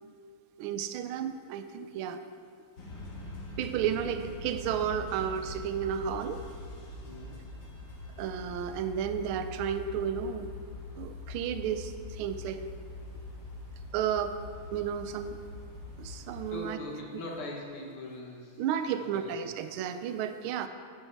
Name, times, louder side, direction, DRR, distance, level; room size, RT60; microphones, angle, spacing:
voice 1, 0.6-2.2 3.6-6.4 8.2-10.5 11.0-12.6 13.9-14.3 14.7-15.4 16.0-16.8 18.6-20.7, right 8 dB, 75° right, 9 dB, 1.4 m, -32 dB
sound 1, 2.8-16.5, left 2 dB, 50° left, 2.2 m, -43 dB
voice 2, 7.0-7.4 16.5-18.6 19.0-19.4, left 1 dB, 80° left, -1 dB, 2.5 m, -41 dB
11.5 x 10.0 x 3.4 m, 2.4 s
omnidirectional pair, 2.4 m